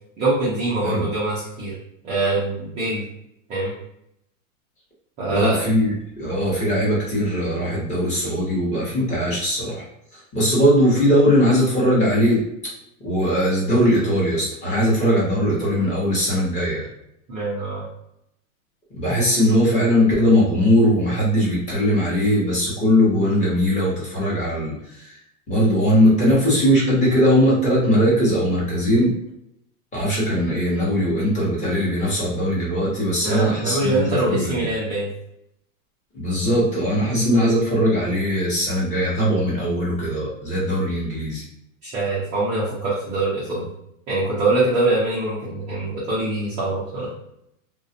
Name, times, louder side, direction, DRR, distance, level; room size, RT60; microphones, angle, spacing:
voice 1, 0.2-1.8 2.0-3.0 3.5-3.7 5.2-5.6 17.3-17.9 19.4-19.5 33.2-35.1 41.8-43.7 44.1-47.1, right 2 dB, 15° right, -8 dB, 0.3 m, -23 dB
voice 2, 5.3-9.8 10.1-12.4 13.0-16.9 18.9-25.2 25.5-29.1 29.9-34.7 36.1-41.4, equal, 15° left, -6 dB, 0.9 m, -20 dB
2.4 x 2.1 x 2.6 m, 0.78 s
supercardioid pair, 145°, 42 cm